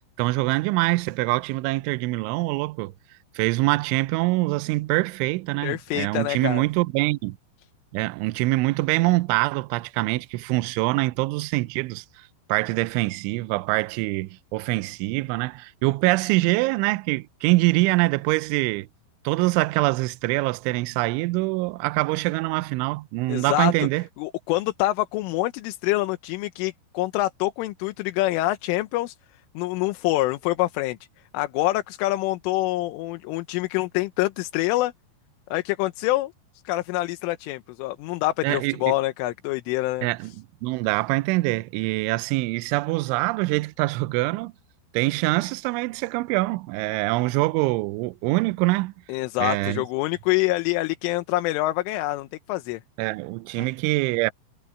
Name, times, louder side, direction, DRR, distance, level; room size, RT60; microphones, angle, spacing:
voice 1, 0.2-2.9 3.4-7.4 7.9-18.9 19.2-24.0 38.4-38.9 40.0-40.3 40.6-44.5 44.9-48.9 49.4-49.8 53.0-54.3, right 22 dB, 80° right, 2.9 m, -24 dB
voice 2, 5.6-6.6 23.3-23.9 24.2-29.2 29.6-31.0 31.3-34.9 35.5-36.3 36.7-40.1 49.1-52.8 53.6-53.7, left 18 dB, 80° left, 3.4 m, -26 dB
omnidirectional pair, 5.8 m